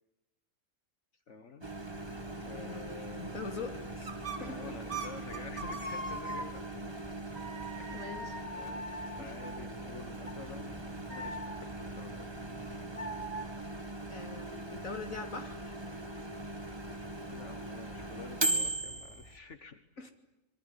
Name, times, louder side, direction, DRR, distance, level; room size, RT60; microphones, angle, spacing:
voice 1, 1.3-1.7 2.4-3.4 4.5-6.9 7.8-8.1 8.5-10.8 11.1-12.4 17.3-19.8, left 4 dB, 60° left, 10 dB, 1.8 m, -49 dB
Microwave oven, 1.6-19.4, right 2 dB, 20° right, 2.3 m, -40 dB
sound 1, 1.8-6.8 7.4-13.5, right 2 dB, 85° right, 4.1 m, -43 dB
voice 2, 2.5-4.1 4.4-4.7 7.9-8.4 9.2-9.4 14.1-15.7 20.0-20.1, left 4 dB, 75° left, 6 dB, 3.3 m, -43 dB
26.0 x 23.0 x 9.9 m, 0.94 s
omnidirectional pair, 1.4 m